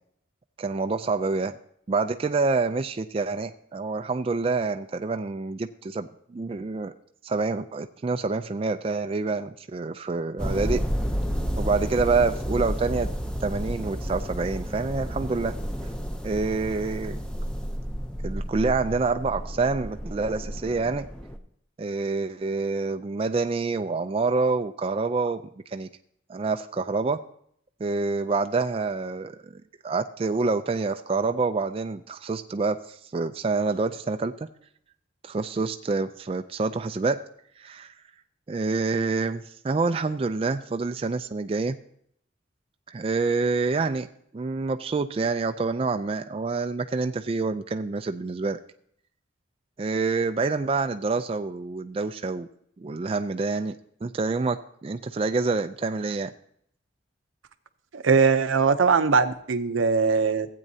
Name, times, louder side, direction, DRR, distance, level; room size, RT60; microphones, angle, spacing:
voice 1, 0.6-1.6 1.9-6.9 7.2-10.8 11.6-13.1 13.4-15.6 16.2-17.2 18.2-21.1 21.8-25.9 26.3-27.2 27.8-34.5 35.2-37.2 37.6-37.9 38.5-41.8 42.9-44.1 44.3-48.6 49.8-52.5 52.8-53.7 54.0-56.3, right 4 dB, 30° right, 7 dB, 0.3 m, -27 dB
sound 1, 10.4-21.4, equal, 5° left, 0.6 m, -31 dB
voice 2, 57.9-60.5, right 5 dB, 85° right, 10 dB, 0.6 m, -21 dB
15.0 x 8.4 x 2.7 m, 0.68 s
head